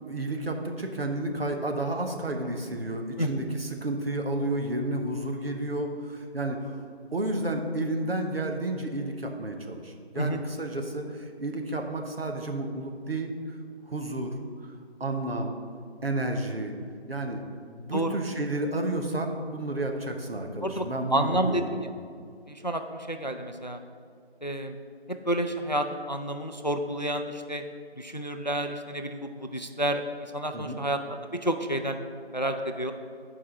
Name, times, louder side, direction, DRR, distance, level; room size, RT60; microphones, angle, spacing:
voice 1, 0.0-6.8 7.1-13.6 13.9-14.3 15.0-15.5 16.0-16.7 17.1-17.4 17.7-21.8 30.5-30.8, right 1 dB, 65° right, 3 dB, 1.1 m, -31 dB
voice 2, 21.1-21.8 22.5-23.8 24.4-24.7 25.3-27.6 28.0-30.0 30.3-31.0 31.4-32.0 32.3-32.9, right 1 dB, 45° left, 7 dB, 0.4 m, -29 dB
8.5 x 4.8 x 5.6 m, 2.2 s
figure-of-eight pair, 175°, 32 cm